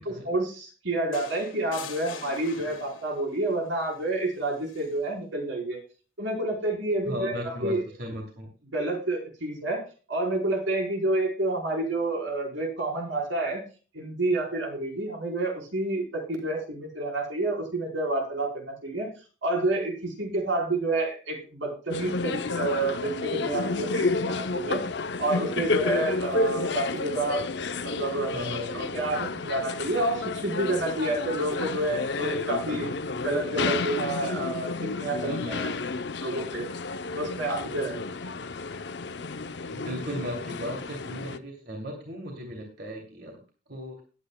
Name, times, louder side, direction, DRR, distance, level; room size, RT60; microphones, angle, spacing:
voice 1, 0.0-5.8 6.2-7.8 8.6-9.8 10.1-13.6 13.9-19.1 19.4-24.8 25.2-27.5 28.0-28.3 28.7-32.9 33.2-35.7 36.2-36.6 37.1-38.0, right 2 dB, 75° right, 0 dB, 4.4 m, -29 dB
sound 1, 1.1-3.3 4.7-4.9, left 5 dB, 90° left, 2.4 m, -42 dB
voice 2, 7.1-8.5 28.3-29.0 35.2-35.9 39.7-43.3 43.7-44.0, equal, 55° right, 0 dB, 2.8 m, -36 dB
sound 2, 21.9-41.4, left 3 dB, 60° left, 0.7 m, -31 dB
20.0 x 9.1 x 2.3 m, 0.35 s
head